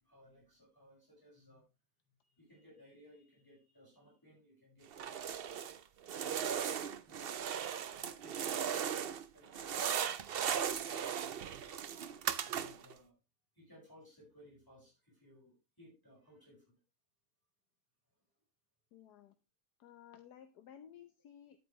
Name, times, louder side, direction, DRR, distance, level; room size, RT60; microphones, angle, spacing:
voice 1, 0.0-1.6 2.2-5.4 6.1-6.7 7.1-7.5 7.9-8.7 9.0-11.7 12.2-13.1 13.5-16.8, equal, 10° left, -5 dB, 5.7 m, -62 dB
sound 1, 4.9-5.8 6.1-9.2 9.5-12.9, right 8 dB, 60° right, 0.6 m, -37 dB
voice 2, 18.9-19.3 19.8-21.7, left 9 dB, 75° left, 8 dB, 1.4 m, -56 dB
10.5 x 8.9 x 3.2 m, 0.29 s
omnidirectional pair, 1.7 m